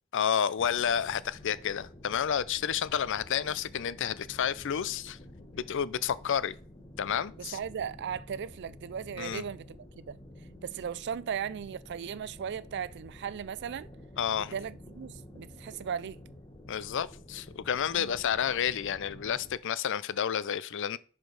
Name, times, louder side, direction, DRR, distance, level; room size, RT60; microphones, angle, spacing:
voice 1, 0.1-5.2 5.5-6.6 7.0-7.6 9.2-9.4 14.2-14.5 16.7-21.0, left 8 dB, 60° left, 0.4 m, -30 dB
sound 1, 0.6-19.6, left 1 dB, 20° left, 1.1 m, -50 dB
voice 2, 7.4-10.2 10.6-13.9 14.4-16.2 17.9-18.2, right 7 dB, 55° right, 0.4 m, -37 dB
11.0 x 5.0 x 4.0 m
head